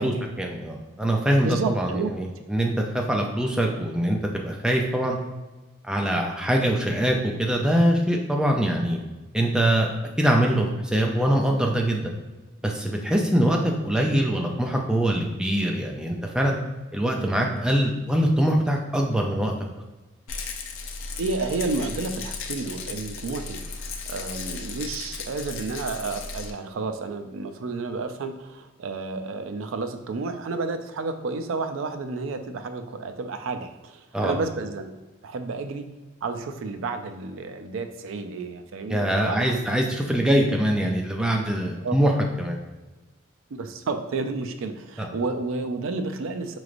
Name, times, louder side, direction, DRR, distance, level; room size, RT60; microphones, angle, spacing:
voice 1, 0.0-5.2 5.9-9.0 9.3-9.9 10.2-12.1 12.6-16.6 16.9-19.5 34.1-34.4 38.9-42.1 42.4-42.5 45.0-45.1, right 1 dB, 5° right, 0 dB, 0.3 m, -23 dB
voice 2, 1.4-2.1 21.2-23.6 24.1-34.9 35.2-35.9 36.2-39.6 41.8-42.0 43.5-46.6, right 3 dB, 75° right, 8 dB, 0.4 m, -31 dB
Rattle, 20.3-26.5, left 4 dB, 80° left, 0.5 m, -35 dB
4.9 x 3.1 x 2.5 m, 1.1 s
head